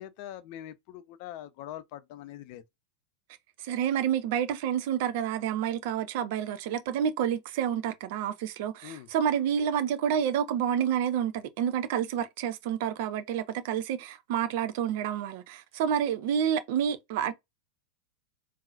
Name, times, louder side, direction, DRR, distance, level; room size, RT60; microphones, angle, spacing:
voice 1, 0.0-2.6 8.8-9.1, left 12 dB, 45° left, 0.5 m, -43 dB
voice 2, 3.6-17.3, right 9 dB, 50° right, 0.6 m, -29 dB
3.7 x 2.6 x 2.5 m
figure-of-eight pair, 90°, 0 cm